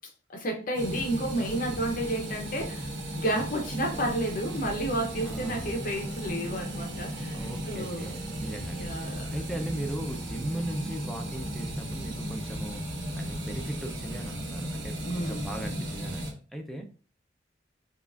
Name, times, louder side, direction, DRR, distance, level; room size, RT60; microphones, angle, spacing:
voice 1, 0.3-2.9 3.2-7.4 7.7-8.1 8.7-9.3 15.0-15.4, right 1 dB, 45° left, 2 dB, 0.8 m, -31 dB
sound 1, 0.7-16.3, right 1 dB, 80° right, 1.1 m, -35 dB
voice 2, 5.2-5.7 7.3-16.9, right 1 dB, ahead, 3 dB, 0.5 m, -38 dB
5.5 x 2.4 x 2.4 m, 0.38 s
head